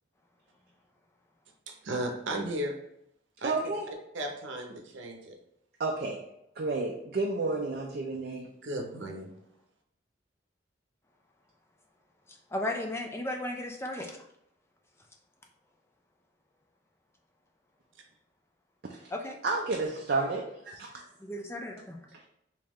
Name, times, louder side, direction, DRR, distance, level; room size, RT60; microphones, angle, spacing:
voice 1, 1.7-2.7 3.4-3.5 4.1-5.3 8.6-9.3, right 1 dB, 85° right, 2 dB, 0.7 m, -35 dB
voice 2, 3.4-3.9 5.8-6.2 6.6-8.5 18.8-19.1 19.4-21.1 22.1-22.3, right 3 dB, 55° right, 0 dB, 0.4 m, -31 dB
voice 3, 12.3-14.2 19.1-19.4 21.2-22.0, left 1 dB, 15° left, 2 dB, 0.4 m, -35 dB
3.5 x 2.8 x 3.1 m, 0.77 s
head